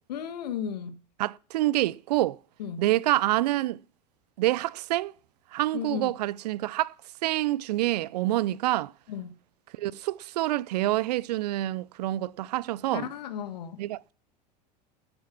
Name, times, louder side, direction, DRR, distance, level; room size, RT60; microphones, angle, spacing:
voice 1, 0.1-1.0 2.6-2.8 5.7-6.1 9.1-9.3 12.9-13.8, left 8 dB, 75° left, 1.6 m, -34 dB
voice 2, 1.2-2.4 2.8-3.8 4.4-5.1 5.5-6.9 7.2-8.9 9.8-13.1 13.8-14.1, right 16 dB, 70° right, 0.5 m, -27 dB
15.5 x 7.9 x 5.9 m
hypercardioid pair, 85°, 21 cm